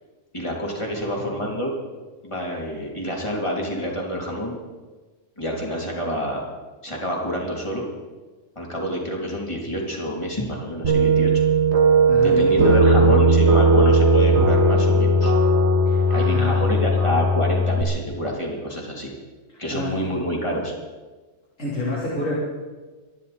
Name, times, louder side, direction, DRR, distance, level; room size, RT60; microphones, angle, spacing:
voice 1, 0.3-1.7 2.2-4.6 5.4-6.4 6.8-7.9 8.5-11.4 12.2-15.3 16.1-19.1 19.6-20.7, equal, 25° left, -1 dB, 3.2 m, -27 dB
voice 2, 0.9-1.6 12.1-12.7 13.0-13.3 15.9-17.1 19.7-20.0 21.6-22.3, left 2 dB, 80° left, -8 dB, 4.4 m, -30 dB
sound 1, 10.8-17.8, right 2 dB, 60° right, 1.9 m, -17 dB
26.0 x 11.0 x 4.3 m, 1.3 s
omnidirectional pair, 1.3 m